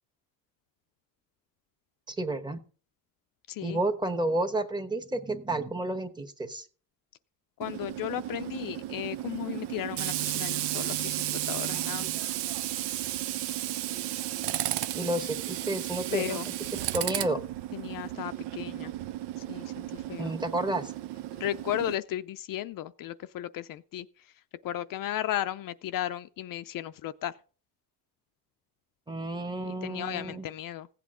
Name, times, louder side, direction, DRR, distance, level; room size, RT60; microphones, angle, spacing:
voice 1, 2.1-2.6 3.6-6.7 14.9-16.4 16.9-17.4 20.2-20.9 29.1-30.5, right 1 dB, 10° right, 1.1 m, -31 dB
voice 2, 3.5-3.8 7.6-12.1 16.1-16.5 17.7-18.9 19.4-20.3 21.4-27.4 29.6-30.9, left 12 dB, 55° left, 0.5 m, -35 dB
Tools, 7.6-22.0, right 14 dB, 75° right, 0.8 m, -34 dB
16.0 x 8.3 x 3.7 m
cardioid pair, 135°, 41 cm